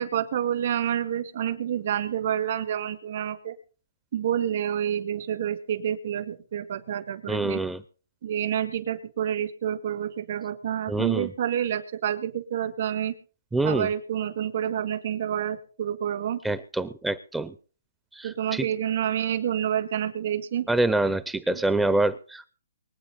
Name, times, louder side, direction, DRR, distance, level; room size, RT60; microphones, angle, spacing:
voice 1, 0.0-3.5 4.1-7.6 8.2-13.1 13.6-16.4 18.2-20.7 21.5-21.6, right 9 dB, 55° right, 9 dB, 2.0 m, -28 dB
voice 2, 7.3-7.8 10.9-11.3 13.5-13.9 16.4-17.5 18.1-18.7 20.7-22.5, right 2 dB, 5° right, 14 dB, 0.5 m, -26 dB
23.5 x 8.6 x 4.1 m, 0.40 s
hypercardioid pair, 150°, 0 cm